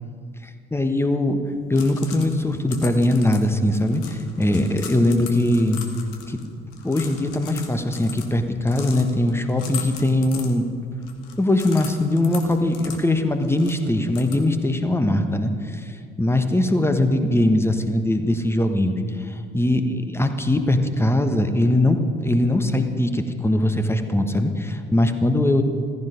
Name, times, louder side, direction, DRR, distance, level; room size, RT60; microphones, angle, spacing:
voice 1, 0.7-1.4 1.7-5.8 6.3-6.4 6.8-10.6 11.4-25.6, left 1 dB, 10° left, 7 dB, 1.3 m, -21 dB
sound 1, 1.5-14.8, left 7 dB, 65° left, 1.5 m, -40 dB
15.0 x 14.5 x 5.2 m, 2.3 s
figure-of-eight pair, 55°, 29 cm